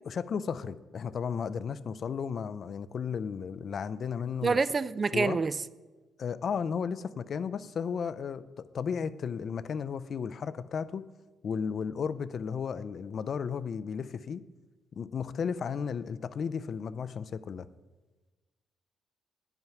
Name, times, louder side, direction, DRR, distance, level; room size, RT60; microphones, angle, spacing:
voice 1, 0.1-4.6 5.1-5.4 6.2-11.0 11.4-14.4 14.9-17.7, left 6 dB, 55° left, 0.4 m, -34 dB
voice 2, 4.4-5.6, right 4 dB, 35° right, 0.3 m, -27 dB
9.1 x 5.6 x 5.9 m
cardioid pair, 90°, 0 cm